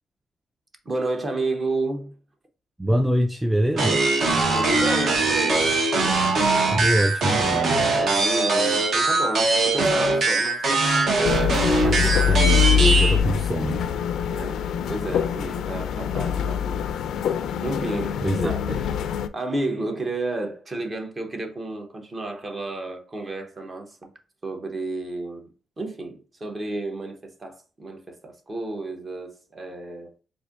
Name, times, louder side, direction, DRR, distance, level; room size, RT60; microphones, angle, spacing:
voice 1, 0.8-2.2 4.5-6.2 8.0-11.4 11.8-12.1 14.3-16.8 17.6-18.6 19.3-24.1 24.4-25.5 25.8-30.1, right 2 dB, 30° right, 0.9 m, -31 dB
voice 2, 2.8-4.0 6.7-7.8 11.8-13.9 18.2-18.8, right 1 dB, 5° right, 0.3 m, -24 dB
sound 1, 3.8-13.2, right 3 dB, 60° right, 1.0 m, -21 dB
sound 2, 11.2-19.3, left 8 dB, 75° left, 0.3 m, -24 dB
4.2 x 2.5 x 2.5 m
cardioid pair, 90°, 0 cm